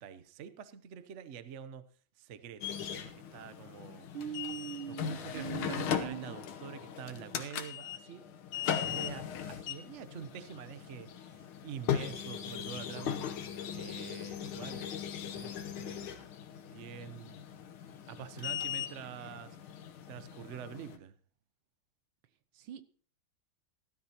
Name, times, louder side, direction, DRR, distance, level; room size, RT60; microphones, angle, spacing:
voice 1, 0.0-1.9 2.2-4.1 4.9-13.2 13.5-16.2 16.7-17.5 18.1-19.6 20.1-21.1, right 8 dB, 60° right, 13 dB, 0.7 m, -46 dB
sound 1, 2.6-21.0, left 9 dB, 85° left, 1.8 m, -39 dB
voice 2, 4.1-6.3 22.5-22.8, right 8 dB, 80° right, 12 dB, 1.7 m, -41 dB
16.0 x 12.5 x 2.9 m, 0.42 s
omnidirectional pair, 2.3 m